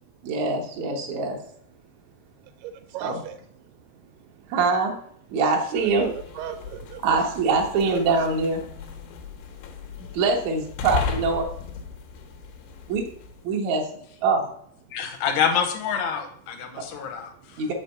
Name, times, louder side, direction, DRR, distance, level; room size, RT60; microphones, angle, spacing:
voice 1, 0.2-1.4 3.0-3.2 4.5-5.0 5.3-6.1 7.0-8.6 10.0-11.5 12.9-13.1 13.4-13.9 14.2-14.5 17.6-17.7, right 4 dB, 65° right, 2.0 m, -23 dB
voice 2, 2.6-3.4 4.4-4.5 5.8-7.3, right 10 dB, 85° right, 2.6 m, -35 dB
sound 1, 5.6-13.5, left 6 dB, 90° left, 3.0 m, -36 dB
voice 3, 14.9-17.6, left 7 dB, 70° left, 1.8 m, -27 dB
6.2 x 4.9 x 6.8 m
omnidirectional pair, 4.6 m